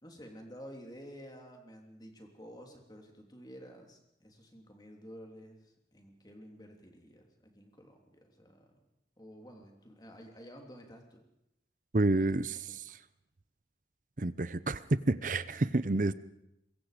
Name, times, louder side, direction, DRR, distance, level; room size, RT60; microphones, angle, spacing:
voice 1, 0.0-8.8 9.2-11.2 12.1-12.3 12.7-12.8, equal, 20° left, 2 dB, 3.2 m, -51 dB
voice 2, 11.9-13.0 14.2-16.1, right 2 dB, 45° right, 15 dB, 0.8 m, -29 dB
24.0 x 21.5 x 5.1 m, 0.85 s
head